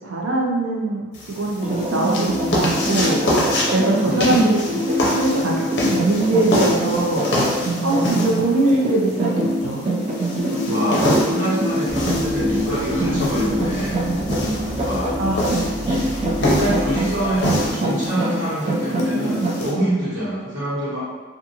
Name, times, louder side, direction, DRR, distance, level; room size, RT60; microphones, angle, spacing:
voice 1, 0.0-4.6 4.9-7.3 7.8-9.9 14.5-14.6 15.2-15.4, right 2 dB, 80° right, -2 dB, 0.6 m, -22 dB
sound 1, 1.1-19.7, left 1 dB, 60° left, 0.5 m, -26 dB
sound 2, 1.6-19.7, right 1 dB, 30° right, 0.3 m, -24 dB
voice 2, 4.0-4.5 10.7-14.1 14.8-15.2 15.9-16.1 16.3-21.0, right 1 dB, 65° right, -11 dB, 1.4 m, -25 dB
sound 3, 11.8-17.7, equal, 5° left, 0.8 m, -32 dB
2.5 x 2.4 x 2.8 m, 1.3 s
head